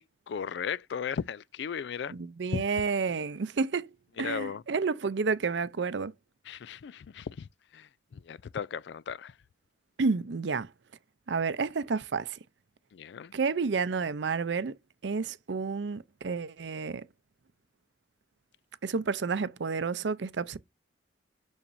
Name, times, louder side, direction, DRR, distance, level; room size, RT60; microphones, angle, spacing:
voice 1, 0.0-2.1 2.5-2.6 4.2-4.6 6.5-9.4 12.9-13.3, left 7 dB, 70° left, 0.3 m, -36 dB
voice 2, 2.1-6.1 10.0-10.7 11.3-12.4 13.3-14.8 15.0-17.1 18.8-20.6, right 4 dB, 75° right, 0.5 m, -30 dB
7.0 x 6.4 x 2.6 m
head